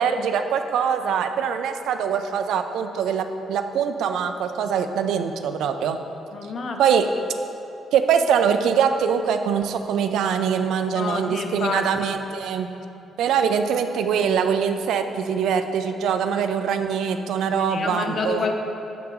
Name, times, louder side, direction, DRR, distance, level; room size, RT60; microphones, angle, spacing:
voice 1, 0.0-6.0 6.8-7.1 7.9-12.7 13.2-18.5, right 7 dB, 85° right, 8 dB, 0.4 m, -23 dB
voice 2, 6.3-6.8 10.9-11.8 17.7-18.5, left 4 dB, 40° left, 4 dB, 0.6 m, -28 dB
7.2 x 5.7 x 3.8 m, 2.8 s
cardioid pair, 135°, 0 cm